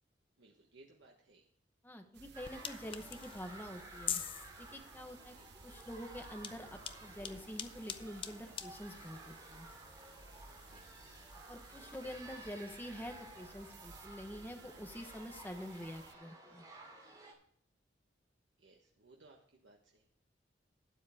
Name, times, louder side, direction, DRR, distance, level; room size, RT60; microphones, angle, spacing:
voice 1, 0.4-1.5 5.3-5.5 10.6-10.9 12.3-12.4 18.6-20.1, right 2 dB, 85° right, 0 dB, 1.3 m, -62 dB
voice 2, 1.8-4.1 4.6-5.4 5.6-9.7 11.5-16.6, equal, 10° left, 4 dB, 1.1 m, -47 dB
sound 1, 2.1-16.1, right 4 dB, 65° right, 0.9 m, -58 dB
sound 2, 2.3-17.3, right 2 dB, 20° right, 2.6 m, -54 dB
sound 3, 2.4-12.2, left 8 dB, 30° left, 0.5 m, -47 dB
12.0 x 9.5 x 3.5 m, 0.65 s
head